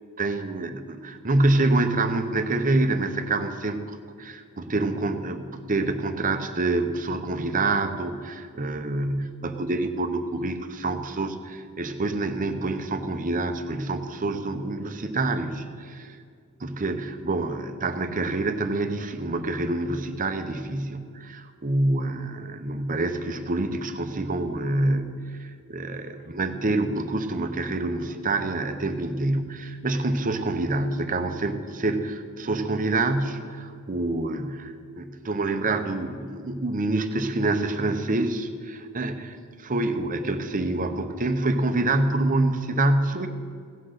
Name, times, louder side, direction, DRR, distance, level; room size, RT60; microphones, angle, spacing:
voice 1, 0.2-16.2 16.6-43.3, right 2 dB, 40° right, 8 dB, 0.8 m, -27 dB
16.5 x 5.9 x 6.5 m, 2.1 s
head